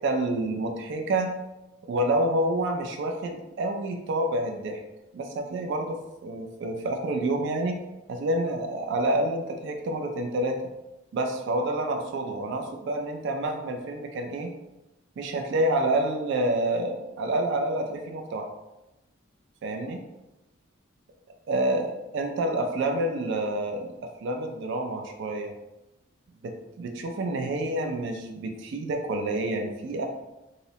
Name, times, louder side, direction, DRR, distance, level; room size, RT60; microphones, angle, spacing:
voice 1, 0.0-1.3 1.9-4.8 5.1-7.8 8.1-10.6 11.1-14.5 15.2-18.5 19.6-20.0 21.5-23.9 24.2-25.5 26.4-30.1, right 1 dB, 60° right, 3 dB, 0.3 m, -28 dB
2.6 x 2.0 x 2.7 m, 0.97 s
head